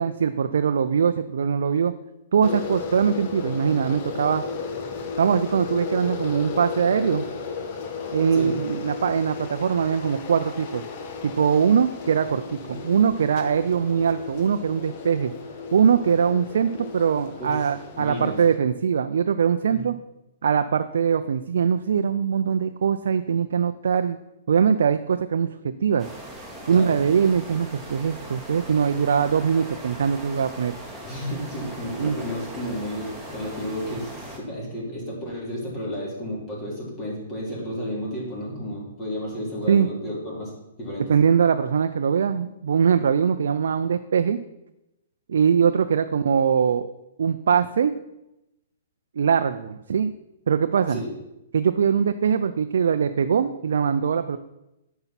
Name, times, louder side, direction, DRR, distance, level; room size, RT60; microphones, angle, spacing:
voice 1, 0.0-1.9 2.3-4.4 5.2-7.3 8.1-10.8 11.2-15.3 15.7-19.9 20.4-24.2 24.5-26.1 26.7-30.7 32.0-32.2 39.7-39.9 41.0-44.4 45.3-46.9 47.2-47.9 49.2-50.1 50.5-51.0 51.5-54.4, right 7 dB, 75° right, 8 dB, 0.4 m, -22 dB
sound 1, 2.4-18.6, left 5 dB, 40° left, 1.2 m, -34 dB
voice 2, 17.9-18.4 19.7-19.8 26.7-27.0 31.0-40.5 40.8-41.1 50.9-51.1, equal, 25° left, -3 dB, 3.2 m, -32 dB
sound 2, 26.0-34.4, right 1 dB, ahead, 2.0 m, -39 dB
9.1 x 5.6 x 5.7 m, 0.91 s
hypercardioid pair, 145°, 0 cm